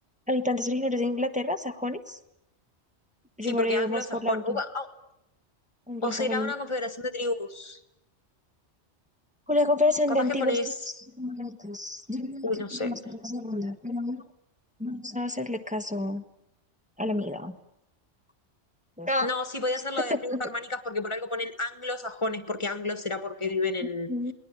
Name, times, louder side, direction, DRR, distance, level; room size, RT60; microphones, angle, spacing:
voice 1, 0.3-2.2 3.4-4.6 5.9-6.5 9.5-10.6 11.2-14.2 14.8-16.2 17.0-17.6 19.0-19.3 20.1-20.4 24.1-24.3, left 2 dB, 5° right, 6 dB, 1.3 m, -29 dB
voice 2, 3.4-4.9 6.0-7.8 10.1-10.7 12.4-12.9 19.2-24.1, left 2 dB, 25° left, 10 dB, 1.7 m, -31 dB
28.5 x 20.0 x 8.8 m, 0.86 s
omnidirectional pair, 1.2 m